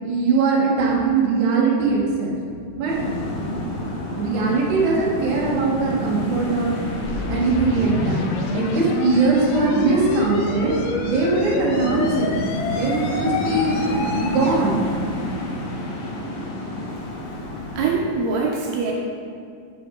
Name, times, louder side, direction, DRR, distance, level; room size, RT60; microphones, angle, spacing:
voice 1, 0.0-2.4 2.8-2.9 4.2-6.7 7.3-8.3 8.5-10.7 11.0-12.3 12.8-13.7 14.1-14.8, right 4 dB, 60° right, -4 dB, 2.2 m, -21 dB
sound 1, 2.8-17.9, left 1 dB, 65° left, 2.3 m, -29 dB
sound 2, 6.9-14.6, left 4 dB, 80° left, 2.4 m, -28 dB
voice 2, 17.8-18.9, right 4 dB, 80° right, -2 dB, 2.7 m, -23 dB
8.6 x 5.9 x 3.6 m, 2.3 s
omnidirectional pair, 4.8 m